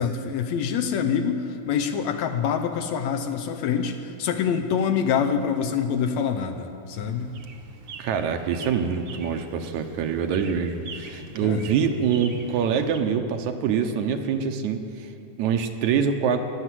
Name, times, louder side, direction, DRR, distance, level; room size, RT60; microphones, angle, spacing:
voice 1, 0.0-7.3 11.4-11.6, left 7 dB, 75° left, 5 dB, 1.9 m, -25 dB
sound 1, 6.9-13.0, right 4 dB, 60° right, 1.5 m, -42 dB
voice 2, 8.0-15.1 15.4-16.4, right 7 dB, 75° right, 6 dB, 2.2 m, -25 dB
16.5 x 11.5 x 7.6 m, 2.5 s
omnidirectional pair, 3.5 m